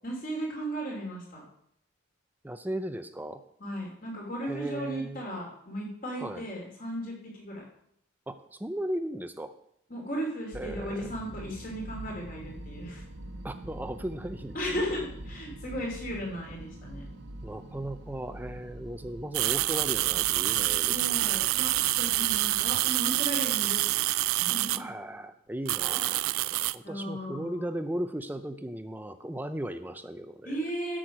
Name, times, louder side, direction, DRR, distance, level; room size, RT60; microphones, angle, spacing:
voice 1, 0.0-1.4 3.6-7.6 9.9-13.0 14.5-17.1 20.9-24.9 25.9-26.1 26.8-27.7 30.4-31.0, equal, 40° left, -1 dB, 2.9 m, -36 dB
voice 2, 2.4-3.4 4.4-5.2 6.2-6.4 8.3-9.5 10.5-11.1 13.4-14.9 17.4-21.4 24.8-30.6, right 1 dB, 10° right, 9 dB, 0.5 m, -37 dB
sound 1, 10.5-22.7, right 1 dB, 55° right, 1.1 m, -44 dB
sound 2, 19.3-24.8 25.7-26.8, right 18 dB, 85° right, 0.3 m, -27 dB
12.5 x 6.4 x 5.0 m, 0.71 s
head